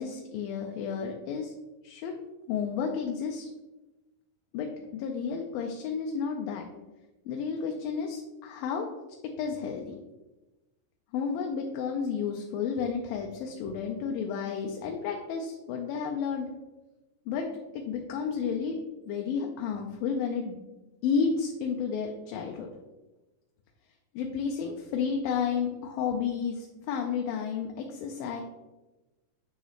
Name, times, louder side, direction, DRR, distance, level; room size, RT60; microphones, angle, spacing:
voice 1, 0.0-1.6 1.8-2.1 2.5-3.5 4.5-6.7 7.3-8.9 9.4-10.0 11.1-16.5 17.3-17.5 17.7-18.8 19.1-20.6 21.0-22.7 24.2-28.4, left 6 dB, 90° left, 2 dB, 2.4 m, -31 dB
8.8 x 3.9 x 3.1 m, 1.1 s
omnidirectional pair, 4.0 m